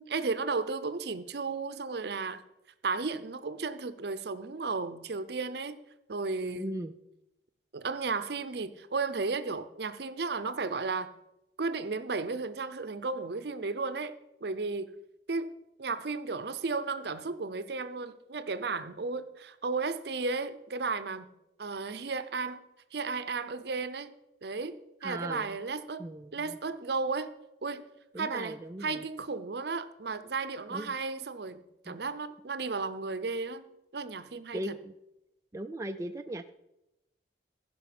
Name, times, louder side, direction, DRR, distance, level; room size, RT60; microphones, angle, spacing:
voice 1, 0.0-2.4 2.8-5.8 6.1-6.7 7.7-11.1 11.6-14.9 15.3-15.5 15.8-21.3 21.6-22.6 22.9-24.1 24.4-26.0 26.3-27.3 27.6-27.9 28.2-33.7 33.9-34.7, right 4 dB, 55° right, 13 dB, 0.6 m, -34 dB
voice 2, 6.5-6.9 25.0-25.6 26.0-26.6 28.1-29.1 30.7-31.0 31.9-32.0 34.5-34.9 35.5-36.5, right 1 dB, 15° right, 6 dB, 0.3 m, -38 dB
15.0 x 5.3 x 6.0 m, 0.91 s
head